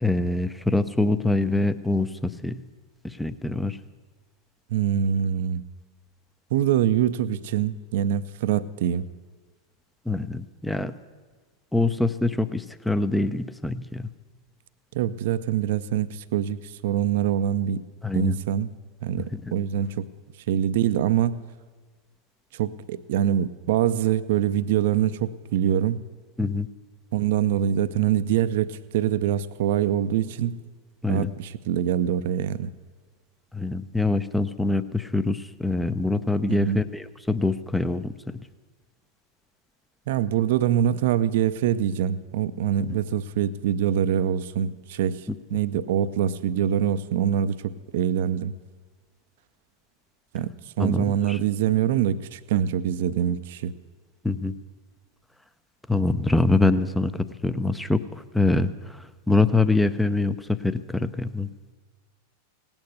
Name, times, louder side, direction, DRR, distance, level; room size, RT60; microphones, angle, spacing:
voice 1, 0.0-2.6 3.0-3.8 10.1-11.0 11.7-14.1 18.0-18.4 19.2-19.5 26.4-26.7 31.0-31.3 33.5-38.4 42.9-43.0 50.8-51.4 54.2-54.5 55.9-58.7 59.3-61.5, left 2 dB, 5° left, 13 dB, 0.6 m, -24 dB
voice 2, 4.7-5.6 6.5-9.1 14.9-17.8 18.1-18.7 19.0-20.1 20.5-21.4 22.5-26.0 27.1-30.6 31.1-32.7 36.5-36.8 40.1-45.3 45.5-48.5 50.3-50.5 50.8-53.7, right 10 dB, 55° right, 15 dB, 0.6 m, -24 dB
18.0 x 8.9 x 8.0 m, 1.4 s
figure-of-eight pair, 90°, 0 cm